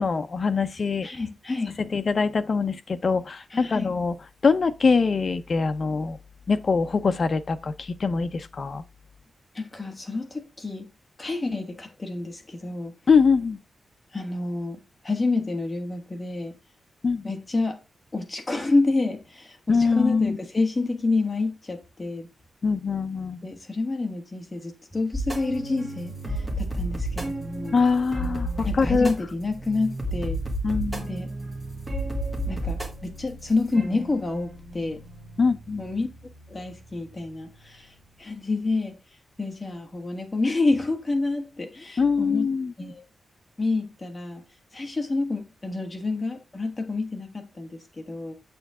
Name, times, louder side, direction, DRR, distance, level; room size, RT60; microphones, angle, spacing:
voice 1, 0.0-1.1 1.9-4.1 4.4-6.2 6.5-8.8 13.1-13.6 17.0-17.2 19.7-20.4 22.6-23.4 27.7-29.1 30.6-31.1 35.4-35.8 42.0-42.7, left 5 dB, 40° left, 0.8 m, -23 dB
voice 2, 1.0-1.8 3.5-3.9 9.5-10.9 11.2-12.9 14.1-16.5 17.2-17.8 18.1-22.3 23.4-27.7 28.6-30.4 31.1-31.3 32.5-35.0 35.8-36.1 36.5-37.9 38.2-39.0 39.4-42.5 42.8-43.0 43.6-44.4 44.7-48.3, left 3 dB, 20° left, 1.5 m, -28 dB
sound 1, 25.1-37.7, right 1 dB, 10° right, 2.4 m, -32 dB
8.1 x 7.0 x 3.7 m
wide cardioid pair, 150°, 0 cm